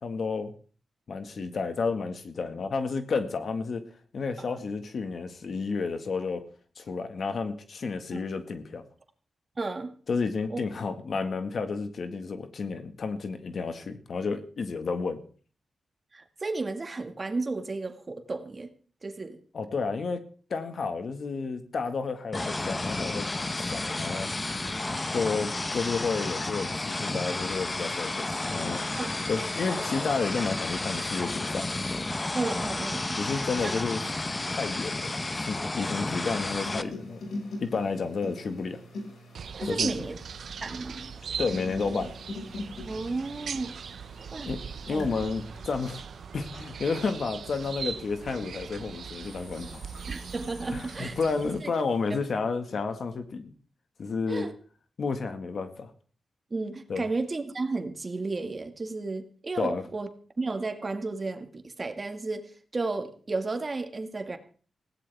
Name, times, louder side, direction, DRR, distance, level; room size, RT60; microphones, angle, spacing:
voice 1, 0.0-0.5 1.1-3.8 4.1-6.4 6.8-8.8 10.1-15.2 19.5-20.2 20.5-24.3 25.1-28.8 29.3-31.7 33.2-34.0 34.5-37.3 37.6-38.8 39.6-40.1 41.4-42.1 44.4-44.6 44.9-46.0 46.3-49.8 50.7-53.5 54.0-54.5 55.0-55.9 56.9-57.1 59.6-59.9, left 4 dB, 65° left, 8 dB, 1.7 m, -31 dB
voice 2, 9.6-9.9 10.5-10.6 16.1-18.7 19.0-19.4 29.0-29.2 32.3-33.2 33.6-33.7 39.6-40.2 40.6-41.1 42.9-43.7 44.3-44.5 44.9-45.1 50.1-51.2 51.6-51.7 52.1-52.2 54.3-54.5 56.5-60.1 60.4-64.4, right 3 dB, 35° right, 6 dB, 1.9 m, -33 dB
sound 1, 22.3-36.8, left 2 dB, 25° left, 1.0 m, -32 dB
sound 2, 35.8-48.5 49.1-51.9, left 2 dB, 90° left, 5.5 m, -44 dB
sound 3, 39.3-51.6, right 6 dB, 75° right, 0.6 m, -39 dB
20.0 x 16.5 x 3.5 m, 0.42 s
cardioid pair, 80°, 0 cm